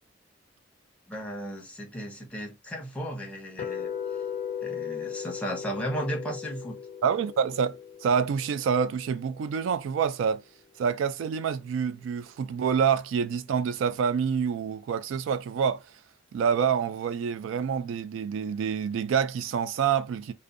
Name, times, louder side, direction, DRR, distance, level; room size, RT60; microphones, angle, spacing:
voice 1, 1.1-3.9 4.6-6.8, right 1 dB, 5° left, 0.7 m, -35 dB
sound 1, 3.6-9.7, left 8 dB, 40° left, 0.3 m, -37 dB
voice 2, 7.0-10.4 10.8-15.8 16.3-20.3, right 7 dB, 85° right, 0.3 m, -27 dB
2.6 x 2.1 x 2.4 m
head